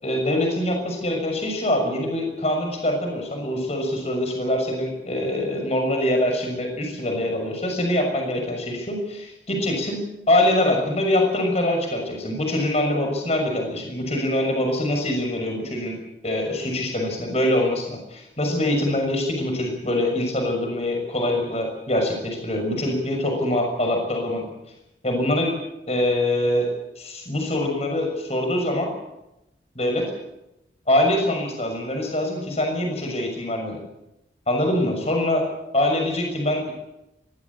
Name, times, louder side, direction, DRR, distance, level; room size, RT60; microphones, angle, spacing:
voice 1, 0.0-10.0 10.3-16.0 16.2-24.4 25.0-25.6 25.9-26.7 27.0-28.9 29.7-30.1 30.9-33.8 34.5-35.5 35.7-36.7, left 1 dB, 35° left, 3 dB, 6.4 m, -24 dB
22.5 x 16.0 x 8.6 m, 0.92 s
head